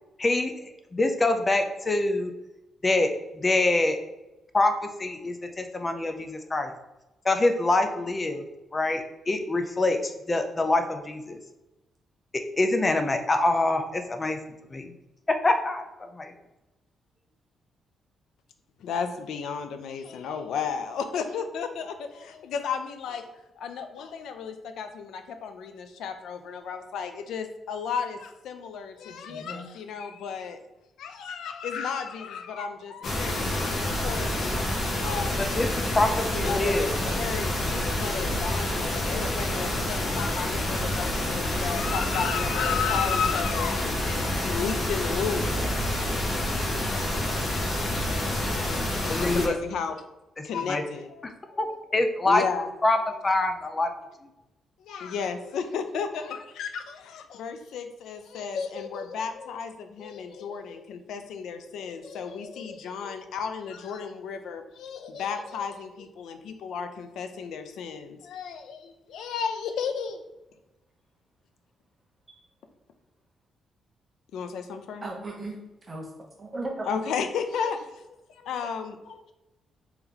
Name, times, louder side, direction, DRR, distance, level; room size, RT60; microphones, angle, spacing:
voice 1, 0.2-0.5 0.9-2.3 2.8-4.0 4.5-4.7 5.0-6.7 7.2-8.4 8.7-11.4 12.6-14.4 14.7-14.9 15.3-15.8 16.1-16.3 35.6-35.7 36.0-36.9 47.2-47.3 49.1-49.5 50.4-50.8 51.6-51.7 51.9-52.4 52.8-53.0 53.2-53.9, left 2 dB, 20° left, 6 dB, 0.4 m, -25 dB
voice 2, 18.8-30.6 31.0-34.3 34.7-35.4 35.9-45.6 49.0-50.0 50.4-52.0 52.2-52.7 54.8-70.2 74.3-75.1 76.8-79.3, left 6 dB, 85° left, 8 dB, 0.4 m, -33 dB
voice 3, 29.1-29.7 45.4-45.7 72.3-72.4 75.0-75.6 75.9-76.1 76.4-77.1, right 2 dB, 20° right, -1 dB, 0.8 m, -37 dB
sound 1, 33.0-49.5, left 1 dB, 50° left, 0.8 m, -28 dB
3.6 x 2.9 x 3.6 m, 0.98 s
cardioid pair, 170°, 0 cm